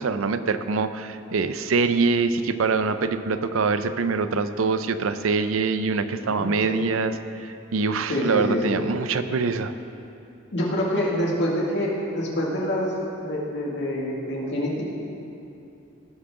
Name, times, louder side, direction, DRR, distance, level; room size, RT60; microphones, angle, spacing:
voice 1, 0.0-7.1 7.4-9.7, right 4 dB, 85° right, 11 dB, 0.5 m, -24 dB
voice 2, 6.0-6.9 8.1-8.8 10.5-12.9 13.2-14.8, equal, 60° left, -4 dB, 2.3 m, -26 dB
18.5 x 7.5 x 3.8 m, 2.8 s
head